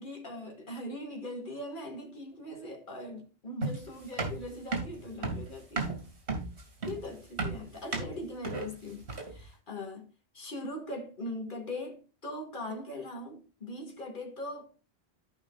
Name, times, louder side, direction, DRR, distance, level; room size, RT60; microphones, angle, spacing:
voice 1, 0.0-6.0 6.9-14.8, left 1 dB, 50° left, 2.4 m, -41 dB
sound 1, 3.6-9.5, right 3 dB, 70° right, 2.7 m, -34 dB
13.5 x 5.5 x 2.4 m
omnidirectional pair, 1.1 m